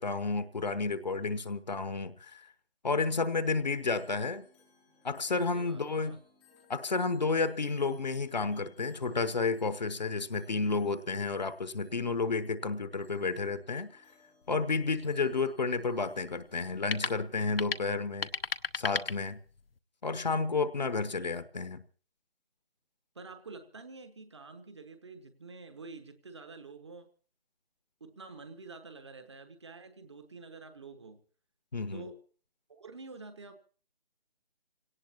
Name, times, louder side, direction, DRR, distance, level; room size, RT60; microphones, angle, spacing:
voice 1, 0.0-2.5 2.8-4.4 5.0-6.2 6.7-14.0 14.5-18.3 18.7-19.4 20.0-21.8 31.7-32.1, left 4 dB, 45° left, 1.0 m, -31 dB
sound 1, 3.7-17.0, left 4 dB, ahead, 0.7 m, -64 dB
voice 2, 5.4-6.2 15.0-15.2 23.1-27.1 28.0-31.2 31.9-32.2 32.7-33.6, right 3 dB, 30° right, 1.0 m, -48 dB
sound 2, 14.4-19.8, left 4 dB, 75° left, 0.8 m, -38 dB
26.5 x 17.5 x 2.8 m
figure-of-eight pair, 155°, 30 cm